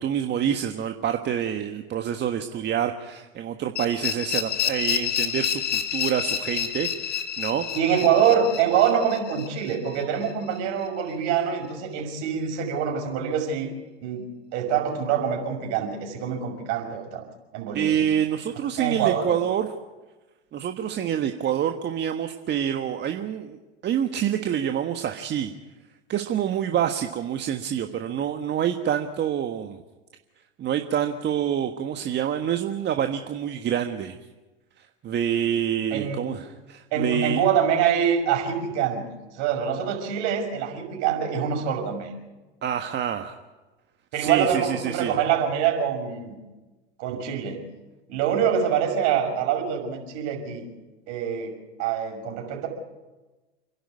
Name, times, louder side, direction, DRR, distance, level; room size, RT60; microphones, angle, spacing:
voice 1, 0.0-7.7 17.7-19.7 20.5-25.5 26.1-29.8 30.6-34.2 34.8-37.4 42.6-43.4 44.1-45.2, right 9 dB, 30° right, 6 dB, 1.5 m, -27 dB
sound 1, 3.8-10.6, left 9 dB, 25° left, 2.6 m, -29 dB
voice 2, 7.7-13.7 14.0-17.2 17.5-18.0 18.8-19.4 35.9-36.2 36.9-39.0 39.4-42.1 44.1-46.4 47.0-47.6 48.1-50.6 51.1-51.5 51.8-52.7, right 8 dB, 50° right, 3 dB, 6.1 m, -25 dB
29.0 x 11.0 x 9.5 m, 1.2 s
hypercardioid pair, 95°, 34 cm